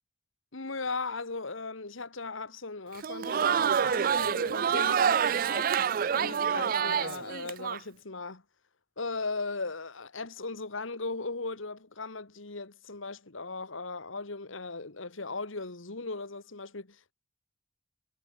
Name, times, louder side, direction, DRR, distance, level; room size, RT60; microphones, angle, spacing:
voice 1, 0.5-5.8 6.1-8.4 9.0-17.1, left 3 dB, 85° left, 2.0 m, -38 dB
Crowd, 2.9-7.8, right 7 dB, 45° right, 0.3 m, -27 dB
head